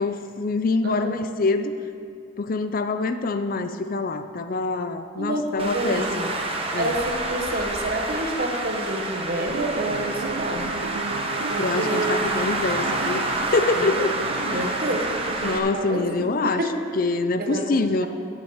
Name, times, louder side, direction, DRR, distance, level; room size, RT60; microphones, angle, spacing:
voice 1, 0.0-1.7 2.4-6.3 6.7-6.9 11.6-14.1 14.5-14.6 15.4-16.6 17.0-18.1, left 3 dB, 50° left, 10 dB, 0.5 m, -25 dB
voice 2, 0.8-1.2 5.2-6.2 6.7-10.7 11.5-12.1 13.7-16.8 17.4-17.7, right 1 dB, 55° right, 3 dB, 1.2 m, -28 dB
Traffic noise roadway noise, 5.6-15.6, right 2 dB, 30° right, 1.0 m, -28 dB
sound 1, 9.4-16.5, right 3 dB, 80° right, 0.5 m, -36 dB
11.0 x 7.4 x 6.5 m, 2.4 s
head